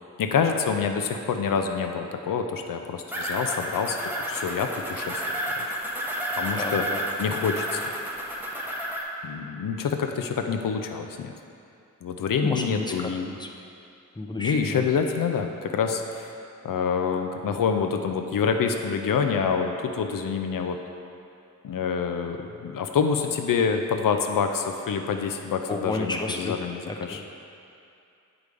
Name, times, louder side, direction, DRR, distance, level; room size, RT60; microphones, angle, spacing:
voice 1, 0.2-5.2 5.6-5.8 6.3-6.8 7.2-7.8 9.2-11.3 12.0-13.3 14.4-16.3 16.6-20.8 21.6-27.2, left 6 dB, 80° left, 5 dB, 0.6 m, -27 dB
sound 1, 3.1-9.0, right 1 dB, 5° right, 1.1 m, -31 dB
voice 2, 6.5-7.0 12.4-13.5 14.2-14.9 25.7-26.5 26.9-27.2, left 2 dB, 15° left, 1 dB, 0.7 m, -32 dB
8.1 x 4.8 x 5.2 m, 2.6 s
wide cardioid pair, 80°, 33 cm